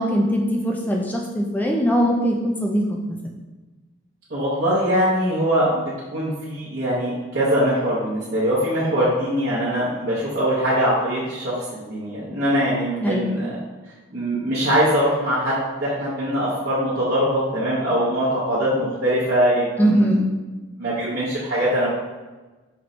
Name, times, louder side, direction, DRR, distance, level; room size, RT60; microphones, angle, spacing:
voice 1, 0.0-3.2 13.0-13.3 19.8-20.3, equal, 10° left, 0 dB, 0.3 m, -21 dB
voice 2, 4.3-13.6 14.1-20.1 20.8-21.9, equal, 50° right, -10 dB, 0.8 m, -22 dB
4.4 x 3.1 x 2.6 m, 1.2 s
head